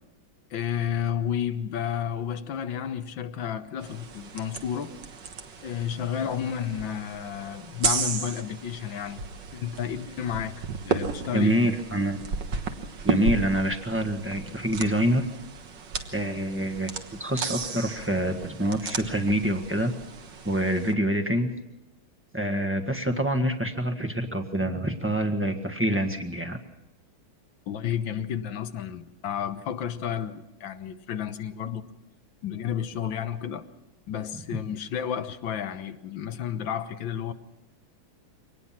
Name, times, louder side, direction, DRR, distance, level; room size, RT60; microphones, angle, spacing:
voice 1, 0.5-4.9 5.6-9.2 9.5-11.6 27.7-31.9 32.4-33.7 34.1-37.3, left 9 dB, 70° left, 1.8 m, -31 dB
sound 1, 3.8-20.9, right 5 dB, 65° right, 2.1 m, -34 dB
voice 2, 11.3-12.2 13.0-15.3 16.1-16.9 17.2-19.9 20.4-21.5 22.3-26.6 34.5-34.6, right 1 dB, 5° right, 1.3 m, -26 dB
24.5 x 19.0 x 5.9 m
omnidirectional pair, 2.2 m